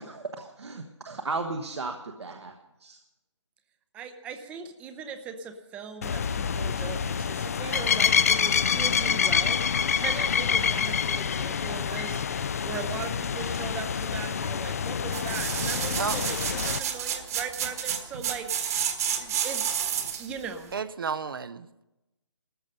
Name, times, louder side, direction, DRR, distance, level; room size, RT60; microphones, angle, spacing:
voice 1, 0.0-2.5 2.8-3.0, right 3 dB, 65° right, 4 dB, 1.3 m, -35 dB
voice 2, 3.9-9.6 9.9-12.2 12.6-18.5 19.2-19.8 20.2-20.7, right 6 dB, 10° right, 8 dB, 0.6 m, -39 dB
sound 1, 6.0-16.8, left 7 dB, 30° left, 0.4 m, -27 dB
sound 2, 15.1-20.3 20.8-20.9, right 8 dB, 30° right, 1.4 m, -30 dB
voice 3, 20.7-21.8, right 6 dB, 50° right, 15 dB, 0.6 m, -32 dB
15.5 x 13.5 x 5.4 m, 0.96 s
figure-of-eight pair, 150°, 15 cm